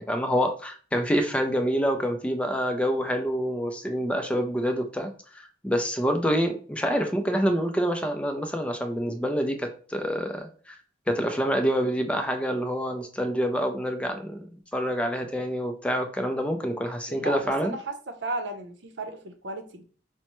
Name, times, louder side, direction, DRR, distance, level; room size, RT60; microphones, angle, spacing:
voice 1, 0.0-10.8 11.1-14.4 14.7-17.7, equal, 5° left, 5 dB, 0.5 m, -27 dB
voice 2, 17.1-17.9 18.2-19.8, right 2 dB, 70° right, 5 dB, 0.7 m, -34 dB
5.3 x 2.1 x 3.0 m, 0.41 s
head